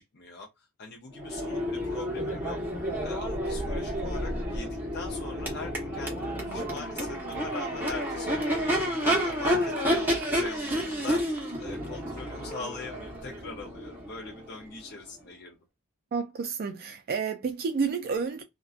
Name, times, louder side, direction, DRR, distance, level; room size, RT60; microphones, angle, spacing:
voice 1, 0.0-2.6 3.0-10.1 10.3-15.6, left 3 dB, 50° left, 0.5 m, -42 dB
Crowd / Race car auto racing / Accelerating revving vroom, 1.2-15.0, equal, 10° right, 0.9 m, -30 dB
voice 2, 16.1-18.4, right 5 dB, 45° right, 0.3 m, -30 dB
2.4 x 2.2 x 2.4 m
head